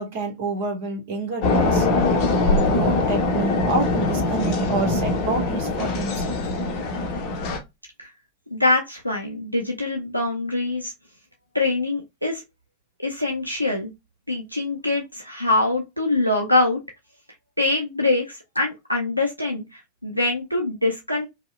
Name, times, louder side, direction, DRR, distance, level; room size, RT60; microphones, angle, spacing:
voice 1, 0.0-1.9 2.5-6.3, right 2 dB, 50° right, 0.9 m, -28 dB
sound 1, 1.4-7.6, left 2 dB, 40° left, 0.6 m, -22 dB
voice 2, 8.5-10.9 11.5-12.4 13.0-13.9 14.3-16.8 17.6-21.3, left 2 dB, 90° right, 0.4 m, -24 dB
2.8 x 2.0 x 2.3 m
figure-of-eight pair, 90°, 0 cm